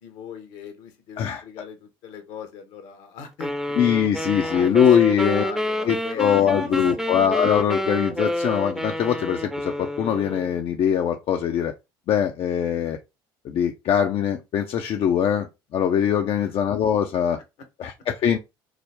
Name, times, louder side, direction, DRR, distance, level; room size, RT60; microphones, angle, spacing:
voice 1, 0.0-4.1 4.4-6.7 16.4-16.5, left 7 dB, 70° left, 1.1 m, -40 dB
sound 1, 3.4-10.6, equal, 5° right, 0.7 m, -28 dB
voice 2, 3.8-5.4 5.9-11.7 12.1-13.0 13.4-15.5 15.7-17.4 17.8-18.4, left 9 dB, 50° left, 0.6 m, -22 dB
4.8 x 2.0 x 3.4 m
hypercardioid pair, 70°, 11 cm